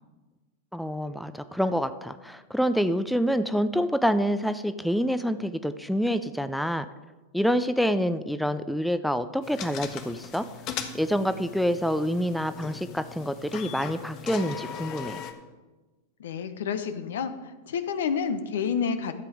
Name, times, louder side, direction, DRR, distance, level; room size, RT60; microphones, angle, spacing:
voice 1, 0.7-6.9 7.3-10.4 10.9-15.2, equal, ahead, 10 dB, 0.5 m, -27 dB
sound 1, 9.4-15.3, left 8 dB, 45° left, 1.3 m, -39 dB
voice 2, 16.2-17.3 17.7-19.2, left 6 dB, 70° left, 10 dB, 0.9 m, -29 dB
13.0 x 7.6 x 4.9 m, 1.2 s
hypercardioid pair, 95°, 0 cm